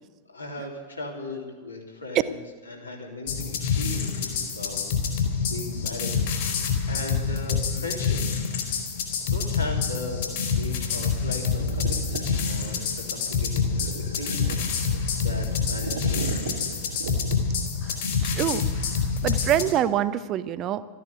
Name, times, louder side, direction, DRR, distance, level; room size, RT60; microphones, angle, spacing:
voice 1, 0.3-6.2 6.9-8.4 9.2-13.9 14.2-16.5, left 2 dB, 85° left, -2 dB, 3.4 m, -38 dB
sound 1, 3.3-19.7, left 5 dB, 55° left, 3.5 m, -27 dB
sound 2, 11.6-12.9 13.7-15.2 15.7-17.7, right 6 dB, 70° right, 2.4 m, -37 dB
voice 2, 18.2-20.8, right 11 dB, 35° right, 14 dB, 0.7 m, -26 dB
13.5 x 10.0 x 9.7 m, 1.3 s
figure-of-eight pair, 90°, 0 cm